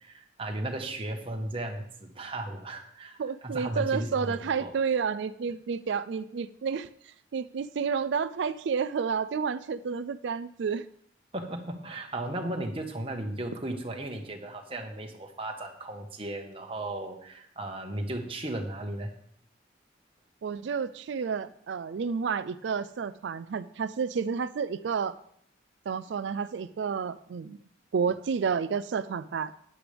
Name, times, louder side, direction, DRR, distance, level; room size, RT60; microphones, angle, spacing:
voice 1, 0.0-4.3 4.6-4.7 11.3-19.1, right 1 dB, 30° right, 3 dB, 1.3 m, -35 dB
voice 2, 3.2-10.9 20.4-25.2 25.9-27.6 27.9-29.6, right 6 dB, 65° right, 12 dB, 0.4 m, -30 dB
12.0 x 10.0 x 3.4 m, 0.67 s
head